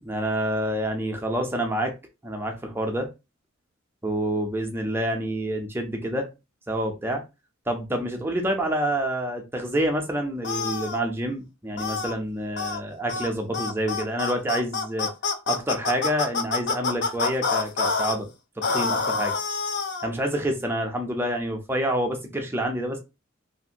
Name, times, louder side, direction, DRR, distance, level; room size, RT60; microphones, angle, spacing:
voice 1, 0.0-1.9 2.2-3.1 4.0-6.3 6.7-7.2 7.7-15.1 15.5-18.3 18.6-19.4 20.0-23.0, right 1 dB, 10° right, 0.5 m, -27 dB
sound 1, 10.4-11.0 11.8-12.1 12.6-12.8 13.1-13.3 13.5-18.1 18.6-20.1, left 4 dB, 55° left, 0.5 m, -27 dB
2.7 x 2.5 x 2.7 m
head